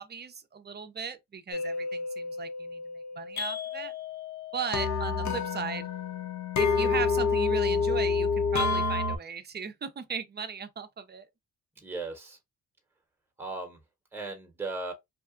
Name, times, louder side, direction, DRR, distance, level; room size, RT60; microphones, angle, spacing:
voice 1, 0.0-3.9 4.5-5.9 6.6-11.3, right 6 dB, 30° right, 0.5 m, -37 dB
sound 1, 1.5-9.2, left 4 dB, 55° left, 0.6 m, -29 dB
voice 2, 11.8-12.4 13.4-13.8 14.1-14.9, right 3 dB, 5° right, 0.9 m, -37 dB
2.8 x 2.3 x 2.4 m
cardioid pair, 80°, 34 cm